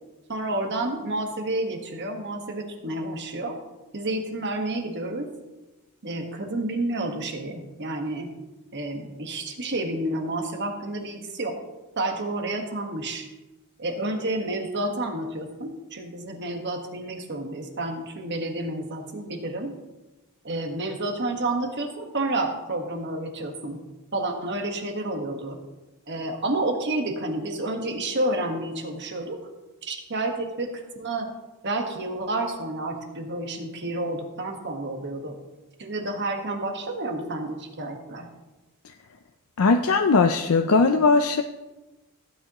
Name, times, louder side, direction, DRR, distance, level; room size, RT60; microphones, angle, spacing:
voice 1, 0.3-3.6 3.9-5.3 6.0-8.3 8.7-11.5 12.0-13.3 13.8-19.7 20.4-23.8 24.1-25.6 26.1-29.4 29.8-31.3 31.6-35.4 35.8-38.3, right 2 dB, 55° right, 4 dB, 1.5 m, -30 dB
voice 2, 39.6-41.4, left 4 dB, 70° left, 6 dB, 0.5 m, -19 dB
16.5 x 9.0 x 3.0 m, 1.1 s
head